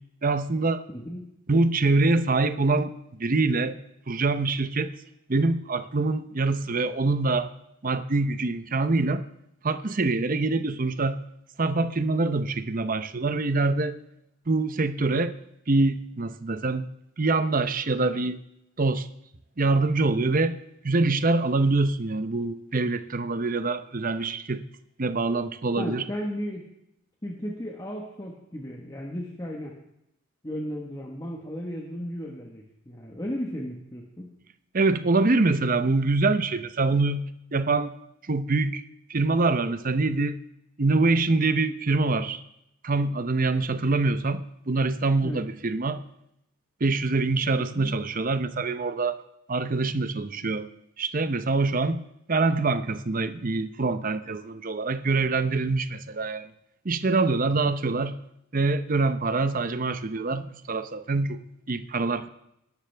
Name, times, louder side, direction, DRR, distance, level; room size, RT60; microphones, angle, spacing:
voice 1, 0.2-0.8 1.5-3.8 4.1-4.9 5.3-7.5 7.8-9.2 9.6-11.2 11.6-14.0 14.5-15.3 15.7-16.9 17.2-18.4 18.8-19.1 19.6-20.6 20.8-24.6 25.0-26.0 34.7-37.3 37.5-37.9 38.2-38.8 39.1-40.4 40.8-42.4 42.8-46.0 46.8-49.2 49.5-50.7 51.0-52.0 52.3-56.5 56.8-58.1 58.5-62.3, right 3 dB, 40° right, 11 dB, 0.7 m, -25 dB
voice 2, 0.9-1.3 25.7-26.7 27.2-29.7 30.4-34.3 45.2-45.4 47.7-47.9, equal, 20° left, -1 dB, 1.3 m, -35 dB
20.0 x 12.0 x 3.4 m, 0.80 s
head